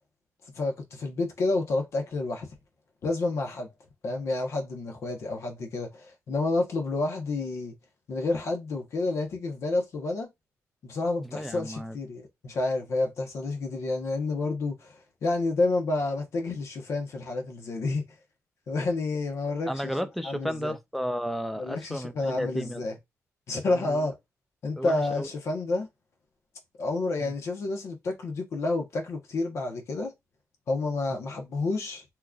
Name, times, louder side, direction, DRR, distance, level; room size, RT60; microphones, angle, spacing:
voice 1, 0.5-2.5 3.0-3.7 4.0-7.7 8.1-10.3 10.8-18.0 18.7-19.9 20.2-20.7 21.6-22.9 23.5-24.2 24.6-25.9 26.8-30.1 30.7-32.0, left 2 dB, 55° left, 1.0 m, -29 dB
voice 2, 11.2-12.0 19.7-22.8 23.6-24.1 24.8-25.3 27.2-27.3, equal, ahead, 0.4 m, -33 dB
3.7 x 2.9 x 2.4 m
wide cardioid pair, 155°, 6 cm